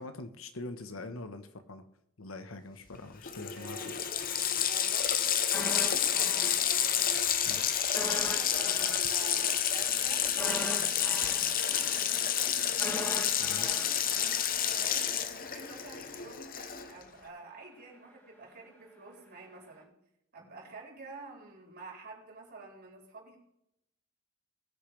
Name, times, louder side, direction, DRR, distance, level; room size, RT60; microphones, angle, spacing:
voice 1, 0.0-1.8 2.2-3.9 7.4-7.6 13.4-13.8, left 2 dB, 75° left, 9 dB, 1.1 m, -43 dB
Water tap faucet, 2.9-3.0 3.2-17.0, left 9 dB, 45° left, 0.8 m, -29 dB
voice 2, 3.5-7.6 7.9-12.8 13.5-14.0 14.6-19.9 20.3-23.4, right 3 dB, 50° right, -3 dB, 4.7 m, -50 dB
sound 1, 5.5-7.2 7.4-7.6 7.9-15.0 15.3-15.5, equal, 10° left, 2.2 m, -41 dB
20.5 x 6.9 x 3.3 m, 0.80 s
head